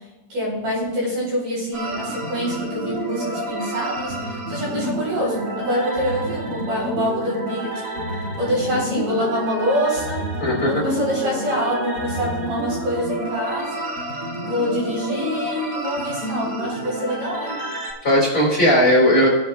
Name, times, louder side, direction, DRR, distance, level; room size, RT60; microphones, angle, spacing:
voice 1, 0.3-10.2 10.6-13.9 14.4-17.6, equal, 50° right, -4 dB, 5.2 m, -26 dB
sound 1, 1.7-17.9, right 1 dB, 70° right, 1.0 m, -29 dB
voice 2, 10.4-10.8 18.0-19.3, equal, 20° left, -4 dB, 3.6 m, -17 dB
21.0 x 8.5 x 2.3 m, 1.1 s
omnidirectional pair, 5.6 m